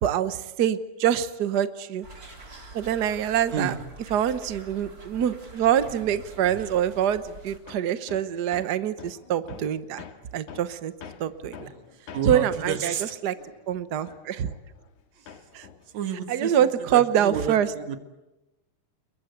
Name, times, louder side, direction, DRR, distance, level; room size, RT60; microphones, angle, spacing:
voice 1, 0.0-2.1 2.7-3.7 4.1-10.0 10.3-10.9 11.2-11.7 12.3-12.9 13.2-13.3 13.7-14.5 15.5-15.7 16.3-17.7, right 10 dB, 85° right, 13 dB, 0.9 m, -25 dB
sound 1, 2.0-7.6, right 2 dB, 30° right, 4.2 m, -45 dB
voice 2, 3.5-3.8 11.6-11.8 12.1-13.1 15.1-15.4 15.9-18.0, right 7 dB, 70° right, 9 dB, 2.9 m, -31 dB
Hammer, 7.7-15.0 15.3-17.0, left 7 dB, 75° left, 3.2 m, -47 dB
29.0 x 22.5 x 8.2 m, 0.96 s
omnidirectional pair, 3.5 m